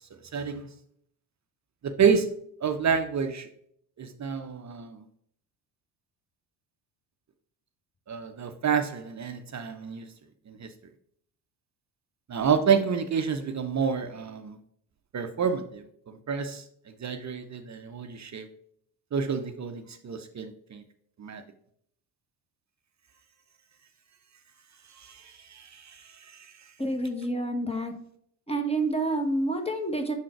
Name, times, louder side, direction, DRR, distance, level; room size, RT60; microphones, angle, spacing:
voice 1, 0.3-0.7 1.8-2.3 2.6-3.5 4.0-5.0 8.1-10.0 10.5-10.7 12.3-14.6 15.1-16.6 17.0-18.5 19.1-20.8 21.2-21.4 25.0-26.4, right 6 dB, 35° right, 0.7 m, -29 dB
voice 2, 26.8-27.9 28.5-30.1, right 2 dB, 10° left, 1.2 m, -28 dB
5.7 x 3.8 x 4.5 m
supercardioid pair, 70°, 50 cm